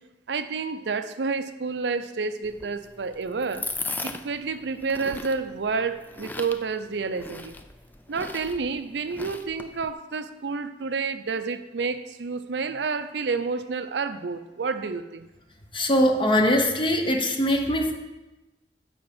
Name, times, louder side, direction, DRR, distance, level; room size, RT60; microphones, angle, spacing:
voice 1, 0.3-3.7 4.0-7.5 8.1-15.3, right 4 dB, 75° right, 10 dB, 0.5 m, -29 dB
sound 1, 2.4-9.9, left 3 dB, 10° left, 0.4 m, -38 dB
voice 2, 15.7-17.9, equal, 30° left, 4 dB, 0.8 m, -22 dB
7.8 x 5.1 x 7.1 m, 1.1 s
head